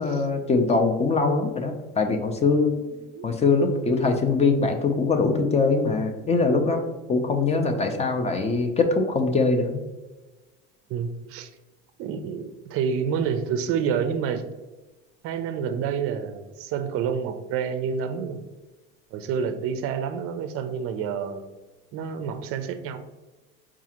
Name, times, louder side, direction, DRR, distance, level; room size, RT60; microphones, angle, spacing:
voice 1, 0.0-2.7 3.2-6.8 7.1-9.8, left 3 dB, 20° left, 4 dB, 0.4 m, -22 dB
voice 2, 2.9-3.2 10.9-11.5 12.0-14.4 15.2-18.4 19.1-21.4 21.9-23.0, right 7 dB, 50° right, 9 dB, 0.4 m, -28 dB
4.7 x 2.4 x 2.8 m, 1.2 s
supercardioid pair, 100°, 31 cm